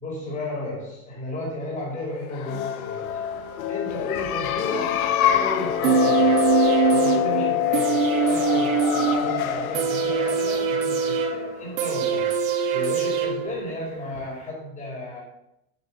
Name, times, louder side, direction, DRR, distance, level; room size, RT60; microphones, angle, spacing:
voice 1, 0.0-3.2 3.7-6.4 6.9-12.3 12.7-15.2, left 2 dB, 15° left, -5 dB, 5.1 m, -33 dB
sound 1, 2.3-11.8, left 11 dB, 75° left, 1.5 m, -25 dB
sound 2, 5.8-13.8 14.2-14.3, right 7 dB, 65° right, 2.7 m, -23 dB
9.3 x 7.4 x 8.8 m, 0.80 s
supercardioid pair, 150°, 43 cm